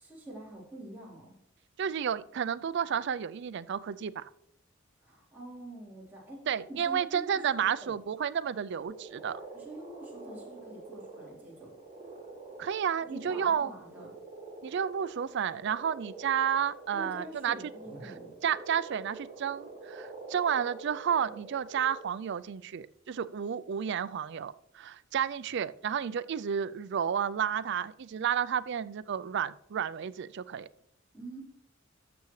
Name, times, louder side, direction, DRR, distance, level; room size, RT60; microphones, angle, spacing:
voice 1, 0.0-1.3 5.0-7.9 9.5-11.5 13.1-14.1 16.9-18.3 31.1-31.4, right 1 dB, 10° right, -7 dB, 3.9 m, -46 dB
voice 2, 1.8-4.3 6.5-9.4 12.6-13.7 14.6-17.6 18.0-18.1 18.4-30.7, right 8 dB, 60° right, 16 dB, 0.4 m, -31 dB
sound 1, 8.8-22.0, right 3 dB, 30° right, 2.5 m, -47 dB
13.0 x 6.9 x 3.2 m, 0.75 s
head